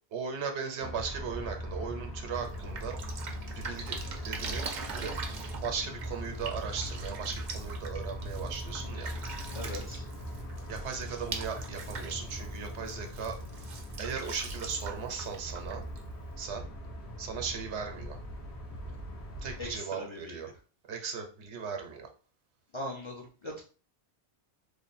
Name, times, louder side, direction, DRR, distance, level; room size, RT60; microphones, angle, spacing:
voice 1, 0.1-3.0 3.5-4.0 4.3-4.6 4.9-5.1 5.6-9.1 10.7-13.4 14.0-15.9 16.4-16.6 17.2-18.2 19.4-20.5 20.9-22.1, right 6 dB, 85° right, 4 dB, 1.0 m, -37 dB
sound 1, 0.8-19.8, equal, 75° left, 1.4 m, -40 dB
Drip, 2.3-16.4, right 5 dB, 55° right, 0.6 m, -43 dB
voice 2, 9.5-10.1 19.6-20.5 22.7-23.6, left 1 dB, 35° left, -1 dB, 0.5 m, -40 dB
3.2 x 2.2 x 4.0 m, 0.39 s
omnidirectional pair, 1.1 m